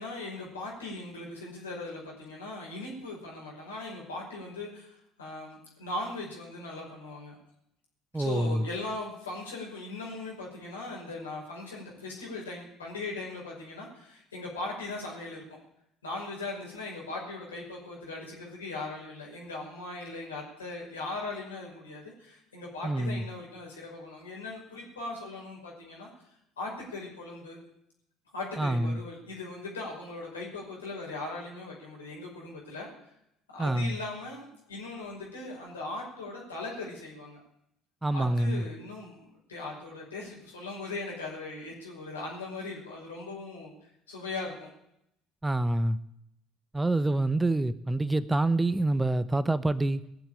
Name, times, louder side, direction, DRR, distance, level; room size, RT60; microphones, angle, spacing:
voice 1, 0.0-7.4 8.1-15.4 16.0-26.1 26.6-27.6 28.3-32.9 33.5-37.4 38.1-44.7, left 2 dB, 85° left, 5.5 m, -39 dB
voice 2, 8.1-8.6 22.8-23.2 28.6-29.0 33.6-34.0 38.0-38.6 45.4-46.0 46.7-50.1, right 2 dB, 15° right, 0.9 m, -26 dB
19.5 x 7.5 x 8.8 m
hypercardioid pair, 60°, 0 cm